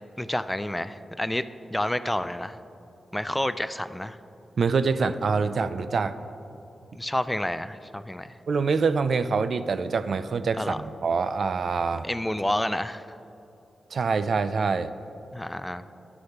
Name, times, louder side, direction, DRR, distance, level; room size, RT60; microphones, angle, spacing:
voice 1, 0.2-1.4 1.7-2.6 3.1-4.2 6.9-8.3 10.6-10.8 12.0-13.0 15.3-15.8, left 1 dB, 10° left, 13 dB, 0.3 m, -29 dB
voice 2, 4.6-6.1 8.5-12.1 13.9-14.9, right 5 dB, 65° right, 12 dB, 0.3 m, -25 dB
11.0 x 6.3 x 2.9 m, 2.9 s
supercardioid pair, 45°, 0 cm